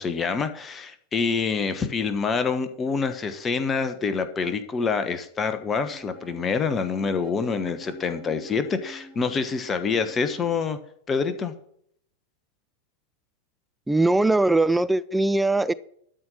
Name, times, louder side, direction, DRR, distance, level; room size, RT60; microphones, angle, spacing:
voice 1, 0.0-10.8 11.1-11.5, left 5 dB, 20° left, 10 dB, 1.1 m, -26 dB
sound 1, 5.5-10.6, right 1 dB, 30° right, 2.2 m, -48 dB
voice 2, 13.9-15.7, right 2 dB, 5° right, 16 dB, 0.4 m, -21 dB
12.5 x 4.5 x 8.3 m, 0.68 s
figure-of-eight pair, 90°, 0 cm